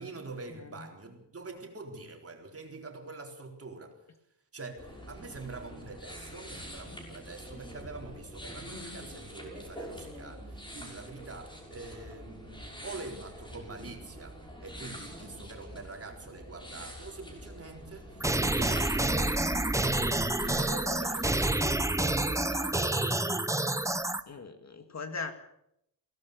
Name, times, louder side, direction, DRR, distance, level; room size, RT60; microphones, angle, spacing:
voice 1, 0.0-4.0 4.5-23.1, right 3 dB, 35° right, 4.2 m, -45 dB
sound 1, 4.8-21.4, equal, 10° left, 6.2 m, -45 dB
sound 2, 18.2-24.2, right 1 dB, 5° right, 1.0 m, -28 dB
voice 2, 24.3-25.3, left 4 dB, 40° left, 2.1 m, -39 dB
23.0 x 17.5 x 6.8 m
wide cardioid pair, 140°, 41 cm